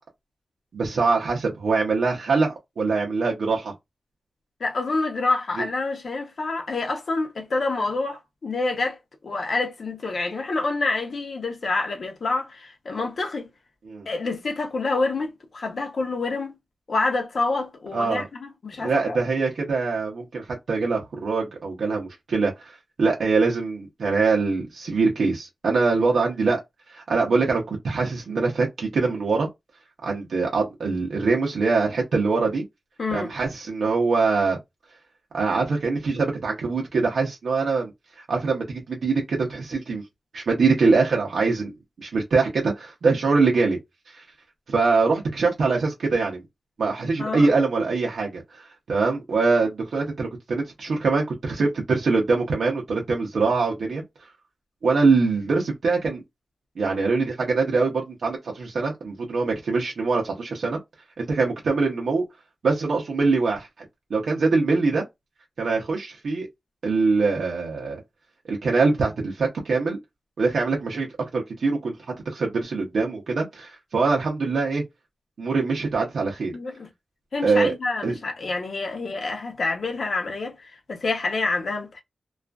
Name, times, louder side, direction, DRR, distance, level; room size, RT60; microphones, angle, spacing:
voice 1, 0.7-3.7 13.9-14.1 17.9-18.3 18.8-22.7 23.0-26.6 26.9-29.5 30.0-32.6 33.1-34.6 35.3-37.9 38.2-40.0 40.3-41.7 42.0-43.8 44.1-44.2 44.7-46.4 46.8-54.0 54.8-56.2 56.8-60.8 61.2-62.2 62.6-63.7 64.1-65.0 65.6-66.5 66.8-68.0 68.5-70.0 70.4-71.1 71.3-71.9 72.3-74.8 75.4-76.5 77.4-77.7 78.0-78.2, right 4 dB, 85° right, 0.7 m, -23 dB
voice 2, 4.6-9.0 9.2-13.5 14.1-16.6 16.9-19.2 33.0-33.3 47.2-47.5 76.5-76.9 77.3-82.0, left 3 dB, 65° left, 0.7 m, -27 dB
2.4 x 2.4 x 2.2 m
wide cardioid pair, 90°, 0 cm